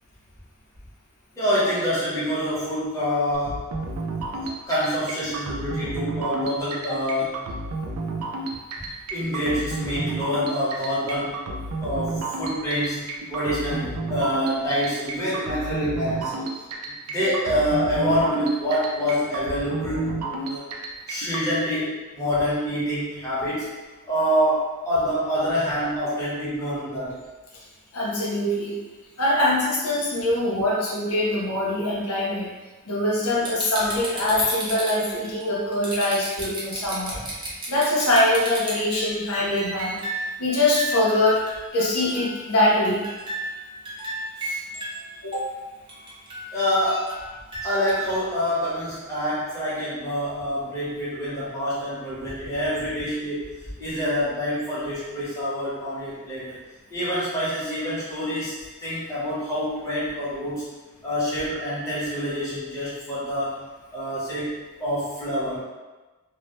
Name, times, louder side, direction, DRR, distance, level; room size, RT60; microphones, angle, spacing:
voice 1, 1.4-3.6 4.2-4.3 4.7-7.4 9.1-11.4 11.8-13.0 13.3-16.4 16.8-20.6 21.1-23.7 24.0-27.2 37.2-37.3 46.5-47.1 47.6-53.5 53.8-56.6 56.9-58.5 58.8-60.6 61.0-63.6 63.9-64.5 64.8-65.6, equal, 15° left, -10 dB, 0.8 m, -26 dB
sound 1, 3.3-21.5, right 2 dB, 80° right, 0.3 m, -31 dB
voice 2, 27.9-28.8 29.2-32.5 32.9-37.2 37.7-40.0 40.4-41.4 41.7-43.1 44.4-44.6 45.2-45.4, left 1 dB, 80° left, -5 dB, 0.6 m, -23 dB
sound 2, 33.4-40.3 40.7-42.5 42.8-45.0 45.3-45.4 45.9-48.1 48.5-48.6, right 1 dB, 20° right, 0.5 m, -34 dB
2.1 x 2.0 x 2.9 m, 1.2 s
head